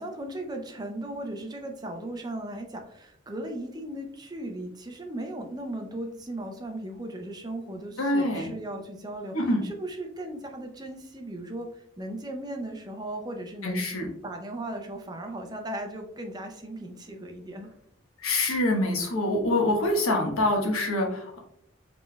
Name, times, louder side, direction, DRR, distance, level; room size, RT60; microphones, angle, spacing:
voice 1, 0.0-13.9 14.2-17.7, right 1 dB, 20° right, 3 dB, 0.5 m, -37 dB
voice 2, 8.0-8.5 9.3-9.6 13.6-14.1 18.2-21.4, left 1 dB, 85° left, 1 dB, 1.1 m, -25 dB
5.0 x 3.3 x 2.2 m, 0.71 s
head